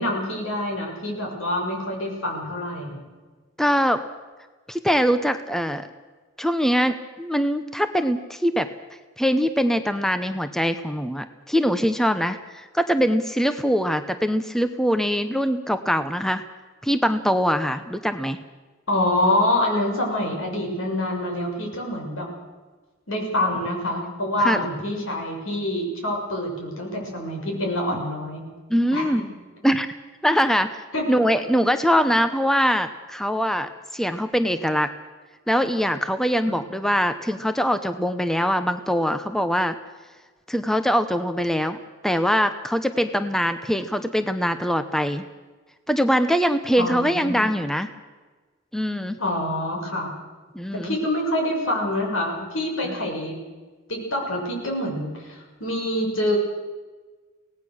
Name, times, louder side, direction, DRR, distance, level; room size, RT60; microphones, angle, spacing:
voice 1, 0.0-3.0 18.9-22.3 23.1-28.4 28.9-29.1 30.9-31.1 36.5-36.6 46.8-47.4 49.2-50.1 50.8-53.3 53.9-56.4, left 1 dB, 90° left, 1 dB, 6.7 m, -26 dB
voice 2, 3.6-4.0 4.7-5.9 6.4-8.7 9.2-16.4 16.8-18.4 24.4-24.6 28.7-29.2 29.6-29.9 30.2-30.8 31.1-34.9 35.5-39.7 40.5-45.2 45.9-47.9 48.7-49.2 50.5-51.0, equal, ahead, 9 dB, 0.8 m, -22 dB
24.5 x 18.0 x 6.5 m, 1.3 s
head